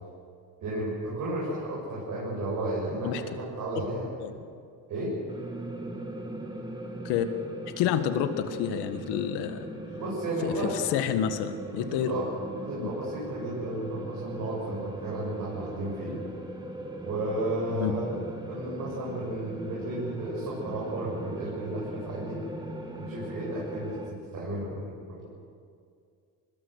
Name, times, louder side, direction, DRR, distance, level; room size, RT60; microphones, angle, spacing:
voice 1, 0.6-4.1 4.9-5.1 10.0-10.7 11.9-12.3 12.6-16.2 17.1-18.2 18.5-22.4 23.0-25.3, right 1 dB, 50° right, -5 dB, 7.9 m, -33 dB
sound 1, 5.3-24.1, right 1 dB, 10° right, 2.4 m, -39 dB
voice 2, 7.8-9.7 10.4-12.1 12.8-12.9 17.7-18.0, left 10 dB, 85° left, 9 dB, 1.7 m, -29 dB
24.5 x 20.0 x 6.6 m, 2.3 s
cardioid pair, 115°, 39 cm